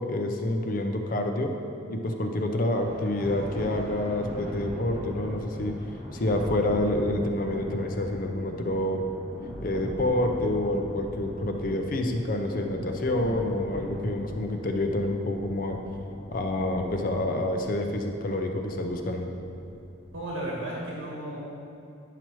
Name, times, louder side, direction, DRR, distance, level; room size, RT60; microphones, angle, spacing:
voice 1, 0.0-1.5 1.9-5.7 6.1-9.0 9.6-15.8 16.3-19.3, left 1 dB, 45° left, 4 dB, 0.5 m, -28 dB
Thunder, 2.7-20.4, equal, 10° left, 1.1 m, -40 dB
voice 2, 20.1-21.4, right 1 dB, 80° right, -5 dB, 1.3 m, -34 dB
10.0 x 5.8 x 3.1 m, 2.7 s
head